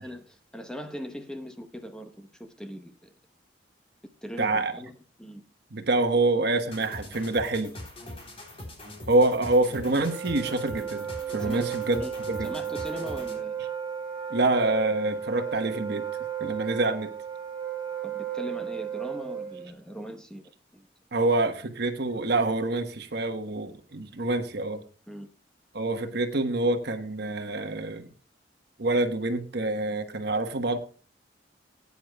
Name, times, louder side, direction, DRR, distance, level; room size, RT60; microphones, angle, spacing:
voice 1, 0.0-3.1 4.2-5.4 11.4-12.1 12.4-13.6 18.0-20.9 25.1-25.3, equal, 5° left, 6 dB, 0.8 m, -40 dB
voice 2, 4.4-4.7 5.7-7.7 9.1-12.0 12.3-12.5 14.3-16.0 16.4-17.1 21.1-24.8 25.7-28.1 28.8-30.8, right 2 dB, 65° right, 7 dB, 1.2 m, -26 dB
sound 1, 6.7-13.5, left 1 dB, 35° left, 3.4 m, -42 dB
Wind instrument woodwind instrument, 9.8-19.7, right 8 dB, 25° right, 3.0 m, -34 dB
19.0 x 9.5 x 2.2 m, 0.37 s
head